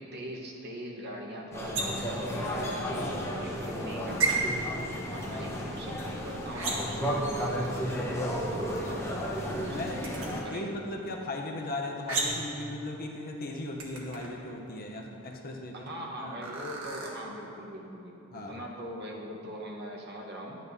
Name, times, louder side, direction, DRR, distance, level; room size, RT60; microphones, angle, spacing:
voice 1, 0.0-2.6 3.4-4.5 5.1-7.7 8.2-10.1 10.4-10.7 15.7-20.6, equal, 45° right, -2 dB, 1.1 m, -42 dB
sound 1, 1.5-10.4, equal, 10° left, 1.0 m, -33 dB
sound 2, 1.7-2.1 4.2-4.4 6.5-7.0 10.0-10.3 12.1-12.5 13.8-14.3 16.4-17.1, right 3 dB, 65° right, 1.4 m, -31 dB
voice 2, 9.7-16.5 18.3-18.6, left 2 dB, 40° left, 0 dB, 0.8 m, -38 dB
11.5 x 9.3 x 2.7 m, 2.9 s
head